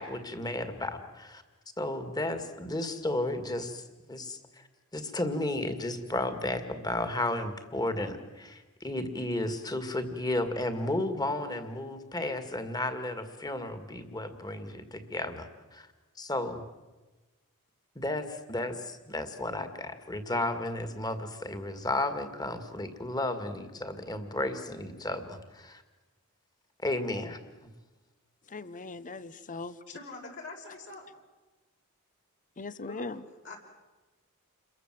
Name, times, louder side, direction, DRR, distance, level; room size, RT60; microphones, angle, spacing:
voice 1, 0.0-1.4 1.8-3.8 4.1-4.6 4.9-15.9 16.2-16.6 18.0-25.8 26.8-27.7, left 1 dB, 20° left, 9 dB, 2.2 m, -33 dB
voice 2, 28.5-29.8 32.6-33.2, left 3 dB, 35° left, 15 dB, 0.9 m, -40 dB
voice 3, 29.9-31.1 32.9-33.2 33.4-33.6, left 2 dB, 60° left, 0 dB, 5.5 m, -43 dB
28.5 x 22.5 x 7.7 m, 1.2 s
head